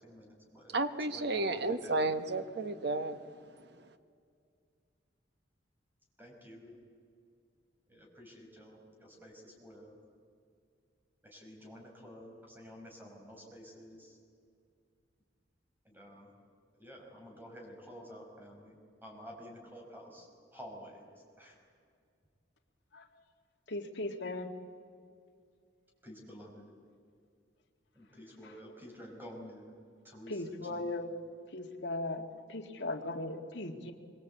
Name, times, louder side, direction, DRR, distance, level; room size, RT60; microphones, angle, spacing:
voice 1, 0.0-0.8 1.1-2.1 6.2-6.8 7.9-10.0 11.2-14.2 15.8-16.3 16.7-18.7 19.0-20.3 20.5-21.6 26.0-26.7 27.9-29.7 30.0-30.9, equal, 10° right, 5.6 m, -51 dB
voice 2, 0.7-3.2, right 2 dB, 65° right, 1.2 m, -32 dB
voice 3, 23.7-24.5 30.3-31.1 31.5-33.9, left 2 dB, 70° left, 2.1 m, -38 dB
25.0 x 23.5 x 8.5 m
head